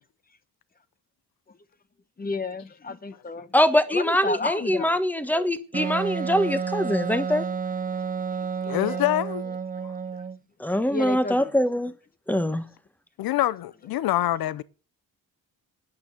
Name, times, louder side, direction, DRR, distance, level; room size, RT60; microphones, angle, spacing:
voice 1, 2.2-3.5 3.9-5.0 5.3-5.5 8.6-9.0 10.9-11.5 12.5-12.6, left 3 dB, 25° left, 0.9 m, -32 dB
voice 2, 3.5-7.4 10.6-11.9 12.3-12.6, equal, 5° left, 1.2 m, -23 dB
Wind instrument woodwind instrument, 5.7-10.4, right 6 dB, 25° right, 0.6 m, -30 dB
voice 3, 8.7-9.4 9.8-9.9 13.2-14.6, left 14 dB, 90° left, 0.7 m, -25 dB
11.5 x 9.8 x 7.5 m
cardioid pair, 130°, 35 cm